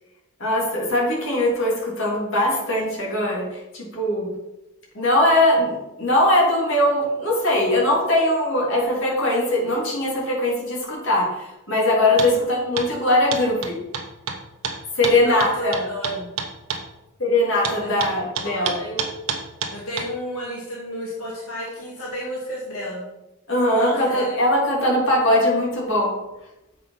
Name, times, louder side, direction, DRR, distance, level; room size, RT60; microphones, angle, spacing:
voice 1, 0.4-4.3 4.9-13.8 14.9-15.8 17.2-18.8 23.5-26.2, left 1 dB, 55° left, -3 dB, 3.1 m, -21 dB
sound 1, 12.2-12.3 12.8-12.9 13.3-16.8 17.6-20.1, right 6 dB, 70° right, 1.1 m, -28 dB
voice 2, 15.2-16.3 17.8-18.1 18.4-19.1 19.7-23.1 23.7-24.3, equal, 80° left, -5 dB, 2.2 m, -32 dB
7.8 x 5.8 x 5.7 m, 0.98 s
head